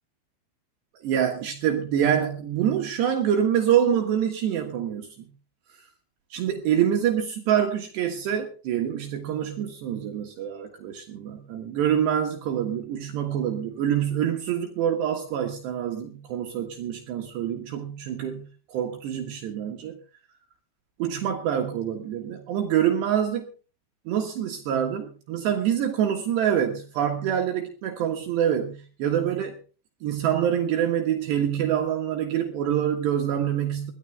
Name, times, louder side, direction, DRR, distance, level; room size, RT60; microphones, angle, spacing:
voice 1, 1.0-5.3 6.3-20.0 21.0-23.5 24.1-29.6 30.0-33.9, right 9 dB, 70° right, 3 dB, 3.4 m, -26 dB
21.5 x 13.0 x 3.4 m, 0.35 s
omnidirectional pair, 5.5 m